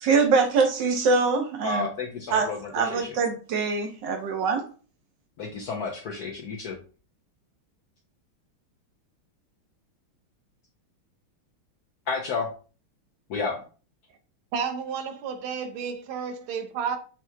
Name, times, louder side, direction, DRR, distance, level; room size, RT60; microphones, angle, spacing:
voice 1, 0.0-1.9 2.3-4.7, right 4 dB, 70° right, 1.2 m, -24 dB
voice 2, 1.6-3.1 5.4-6.8 12.1-12.5 13.3-13.6, left 4 dB, 70° left, 0.9 m, -31 dB
voice 3, 14.5-17.0, right 6 dB, 85° right, 1.5 m, -31 dB
5.8 x 2.8 x 2.2 m
omnidirectional pair, 2.3 m